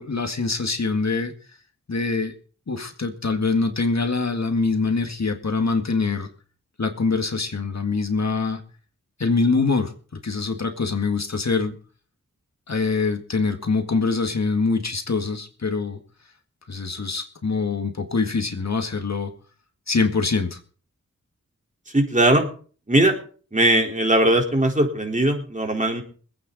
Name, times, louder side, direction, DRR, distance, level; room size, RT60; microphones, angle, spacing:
voice 1, 0.0-1.6 1.9-2.3 2.7-6.3 6.8-8.6 9.2-9.9 10.2-11.7 12.7-16.0 16.7-19.3 19.9-20.6, left 4 dB, 55° left, 5 dB, 1.9 m, -24 dB
voice 2, 21.9-22.5 22.9-23.1 23.5-26.0, right 1 dB, 25° right, 2 dB, 4.1 m, -19 dB
25.5 x 9.2 x 4.1 m, 0.41 s
wide cardioid pair, 65°, 32 cm